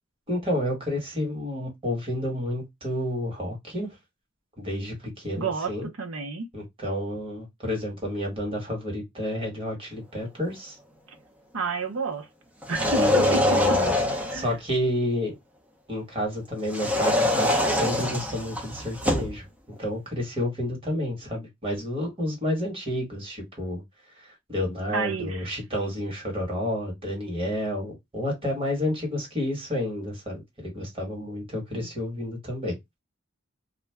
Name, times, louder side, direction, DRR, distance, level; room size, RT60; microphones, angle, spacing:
voice 1, 0.3-3.9 4.6-5.9 6.5-10.7 12.9-14.0 14.3-15.4 15.9-19.4 19.8-23.8 24.2-32.8, left 1 dB, 25° right, 1.4 m, -30 dB
voice 2, 5.4-6.5 11.5-12.3 12.7-13.8 14.3-14.6 24.9-25.5 31.7-31.9, right 4 dB, 75° right, 0.6 m, -30 dB
sound 1, 12.6-14.5 16.7-19.4, left 1 dB, 5° right, 0.5 m, -24 dB
2.4 x 2.1 x 3.3 m
head